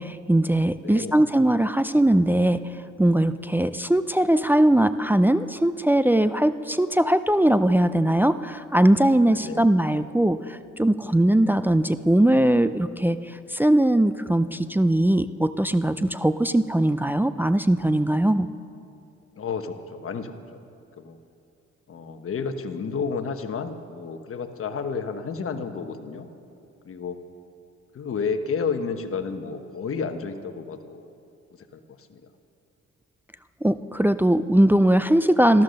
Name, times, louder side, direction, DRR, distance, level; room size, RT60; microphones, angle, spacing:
voice 1, 0.0-2.7 3.0-18.5 33.6-35.6, right 1 dB, 5° right, 11 dB, 0.4 m, -20 dB
voice 2, 0.8-1.3 9.3-9.7 19.4-20.6 21.0-21.2 21.9-26.3 26.8-27.2 27.9-31.1 31.7-32.3, left 5 dB, 45° left, 8 dB, 1.2 m, -31 dB
13.5 x 13.5 x 6.5 m, 2.7 s
cardioid pair, 90°, 30 cm